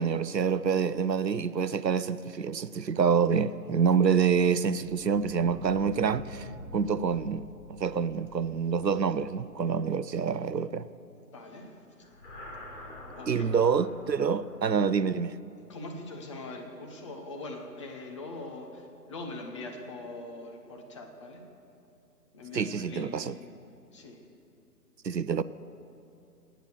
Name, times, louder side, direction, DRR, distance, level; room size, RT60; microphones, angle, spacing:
voice 1, 0.0-7.5 7.8-10.9 13.3-15.3 22.5-23.3 25.0-25.4, right 6 dB, 85° right, 0.7 m, -27 dB
sound 1, 4.7-10.3 12.0-14.5, left 1 dB, 45° left, 3.4 m, -46 dB
voice 2, 11.2-11.7 13.1-13.6 15.7-21.5 22.3-23.4 23.9-24.2, left 2 dB, 20° left, 1.0 m, -42 dB
17.5 x 9.1 x 6.7 m
figure-of-eight pair, 140°, 49 cm